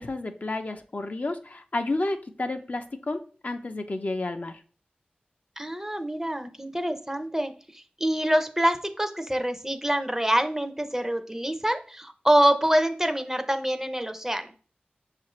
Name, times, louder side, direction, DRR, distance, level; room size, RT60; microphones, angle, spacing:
voice 1, 0.0-4.6, left 2 dB, 50° left, 6 dB, 0.5 m, -31 dB
voice 2, 5.6-14.5, right 1 dB, 15° right, 8 dB, 0.5 m, -26 dB
6.3 x 2.5 x 3.0 m, 0.41 s
wide cardioid pair, 50°, 3 cm